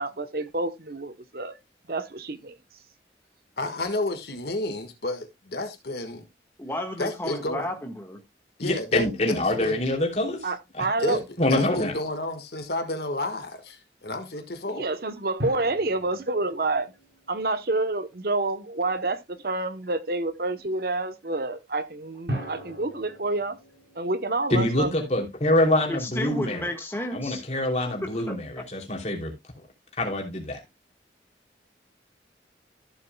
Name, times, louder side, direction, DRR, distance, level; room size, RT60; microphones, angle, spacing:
voice 1, 0.0-1.5 1.9-2.6 10.4-11.2 14.7-16.9 17.3-23.6 23.9-24.9, right 2 dB, 55° right, 0.9 m, -28 dB
voice 2, 3.6-6.3 7.0-7.7 8.6-9.8 11.0-14.9, left 2 dB, 60° left, 1.5 m, -31 dB
voice 3, 6.6-8.2 25.9-27.4 28.0-28.6, left 1 dB, 15° left, 1.5 m, -33 dB
voice 4, 8.6-10.5 10.8-10.9 11.4-11.9 24.5-26.6 27.1-29.3 30.0-30.6, left 1 dB, 40° left, 3.0 m, -25 dB
sound 1, 15.4-18.2 22.3-25.5, equal, 75° right, 6.8 m, -39 dB
14.5 x 7.3 x 2.2 m
head